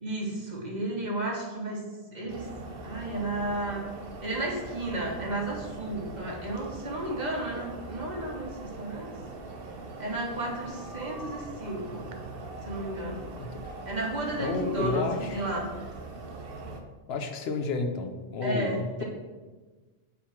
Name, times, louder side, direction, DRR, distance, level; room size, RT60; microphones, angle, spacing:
voice 1, 0.0-1.8 2.1-2.5 2.8-3.8 4.2-9.1 10.0-12.1 12.6-13.3 13.8-15.1 15.3-15.7 18.4-19.0, right 1 dB, 45° right, -2 dB, 1.2 m, -33 dB
sound 1, 2.3-16.8, right 3 dB, 65° right, 0.9 m, -42 dB
voice 2, 13.4-13.8 14.4-15.4 17.1-19.0, left 3 dB, 70° left, 6 dB, 0.9 m, -31 dB
5.3 x 4.5 x 5.8 m, 1.3 s
omnidirectional pair, 1.1 m